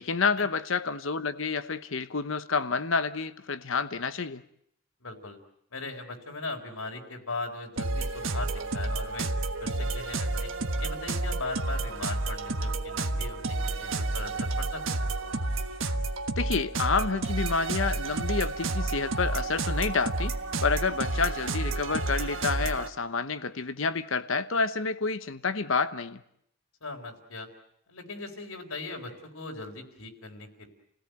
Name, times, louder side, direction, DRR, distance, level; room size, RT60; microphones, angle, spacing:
voice 1, 0.0-4.4 16.4-20.3 20.6-26.2, left 4 dB, 70° left, 0.9 m, -29 dB
voice 2, 5.0-5.4 5.7-9.3 9.6-10.5 10.8-15.1 26.8-27.5 27.9-30.7, left 3 dB, 90° left, 4.1 m, -39 dB
sound 1, 7.8-22.9, right 2 dB, 70° right, 1.4 m, -30 dB
29.0 x 17.0 x 9.1 m
head